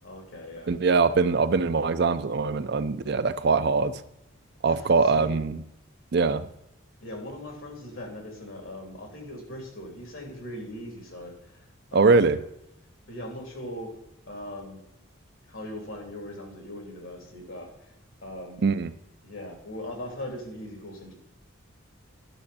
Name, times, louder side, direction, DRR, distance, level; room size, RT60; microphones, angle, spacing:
voice 1, 0.0-0.7 4.7-5.4 7.0-12.3 13.1-13.9 14.3-14.8 15.5-17.9 18.2-18.6 19.2-21.1, left 1 dB, 70° left, 1 dB, 3.0 m, -40 dB
voice 2, 0.7-4.0 4.6-5.6 6.1-6.5 11.9-12.4 18.6-18.9, right 4 dB, 50° right, 12 dB, 0.4 m, -22 dB
11.0 x 6.4 x 4.2 m, 0.84 s
head